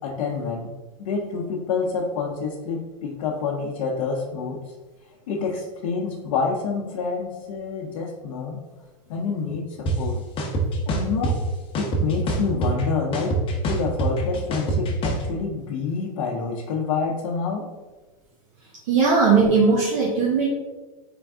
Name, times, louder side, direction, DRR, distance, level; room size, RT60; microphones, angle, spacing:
voice 1, 0.0-0.7 1.0-4.7 5.3-8.6 9.1-10.2 10.9-11.4 11.8-17.7, left 5 dB, 65° left, -2 dB, 0.7 m, -27 dB
sound 1, 9.9-10.0 10.4-11.3 11.7-12.8 13.1-15.2, right 2 dB, 30° left, 0.8 m, -24 dB
voice 2, 18.9-20.5, right 4 dB, 65° right, -5 dB, 1.1 m, -18 dB
3.9 x 3.5 x 3.5 m, 1.2 s
supercardioid pair, 125°, 18 cm